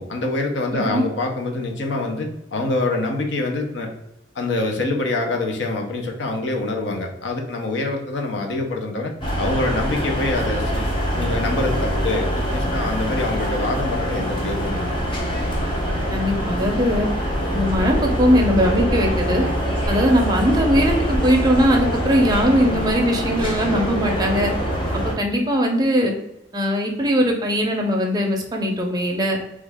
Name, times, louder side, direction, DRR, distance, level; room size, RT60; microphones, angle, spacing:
voice 1, 0.0-3.9 4.4-9.1 9.4-10.8 11.1-15.0, left 2 dB, 70° left, 2 dB, 0.6 m, -25 dB
voice 2, 0.7-1.0 16.1-17.1 17.5-19.4 19.9-24.5 24.9-26.1 26.5-29.4, equal, 20° right, 1 dB, 0.5 m, -20 dB
sound 1, 9.2-25.1, equal, 25° left, 0.6 m, -24 dB
3.1 x 2.3 x 3.4 m, 0.86 s
head